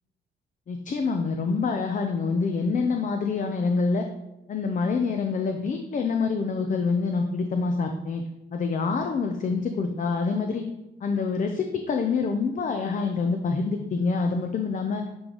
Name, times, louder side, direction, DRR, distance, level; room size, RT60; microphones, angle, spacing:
voice 1, 0.7-4.1 4.5-8.2 8.5-10.6 11.0-15.0, left 4 dB, 40° left, 4 dB, 0.6 m, -26 dB
9.6 x 3.3 x 3.9 m, 0.95 s
cardioid pair, 90°, 20 cm